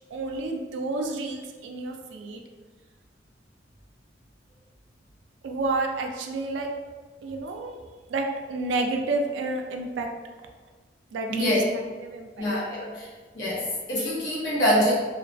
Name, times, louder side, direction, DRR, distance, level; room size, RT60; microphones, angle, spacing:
voice 1, 0.1-2.4 5.4-6.7 7.2-7.8 8.1-10.1 11.1-12.4, right 2 dB, 75° right, 4 dB, 0.3 m, -30 dB
voice 2, 11.3-11.6 12.4-13.1 13.3-14.9, equal, 70° left, -6 dB, 0.9 m, -25 dB
2.4 x 2.3 x 2.5 m, 1.4 s
head